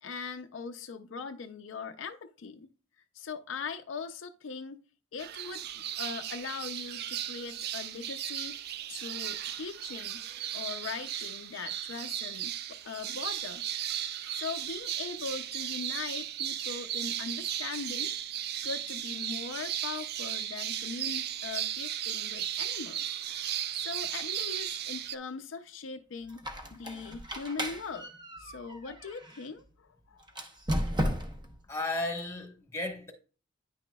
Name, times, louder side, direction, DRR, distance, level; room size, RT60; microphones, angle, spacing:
voice 1, 0.0-2.7 3.1-4.8 5.1-8.6 8.9-13.7 14.0-18.1 18.6-28.1 28.4-30.2, left 5 dB, 70° left, 0.5 m, -41 dB
sound 1, 5.2-25.2, right 11 dB, 55° right, 0.4 m, -36 dB
Squeak, 26.3-29.5 30.3-31.6, equal, 25° right, 0.9 m, -34 dB
voice 2, 31.6-33.1, left 2 dB, 15° left, 1.2 m, -34 dB
9.7 x 6.0 x 2.3 m
head